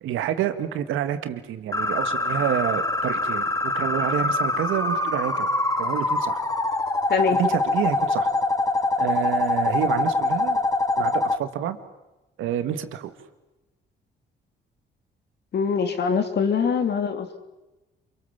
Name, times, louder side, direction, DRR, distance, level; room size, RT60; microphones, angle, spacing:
voice 1, 0.0-5.5 5.8-6.4 7.3-8.3 9.0-10.6 11.0-11.8 12.4-13.1, right 10 dB, 85° right, 9 dB, 2.1 m, -28 dB
sound 1, 1.7-11.4, left 2 dB, 15° left, 1.9 m, -24 dB
voice 2, 7.1-7.4 15.5-17.4, left 6 dB, 60° left, 7 dB, 3.1 m, -23 dB
27.0 x 24.0 x 7.4 m, 1.0 s
cardioid pair, 90°, 20 cm